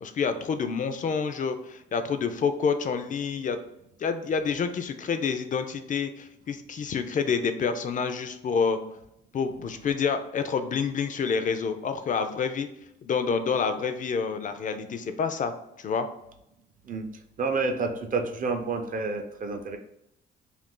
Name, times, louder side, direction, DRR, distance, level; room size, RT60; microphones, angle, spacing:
voice 1, 0.0-3.6 4.0-8.8 9.3-12.7 13.0-15.5 15.8-16.1, left 6 dB, 40° left, 9 dB, 0.4 m, -28 dB
voice 2, 17.4-19.8, right 4 dB, 45° right, 5 dB, 0.5 m, -29 dB
2.5 x 2.4 x 3.7 m, 0.82 s
cardioid pair, 90°, 20 cm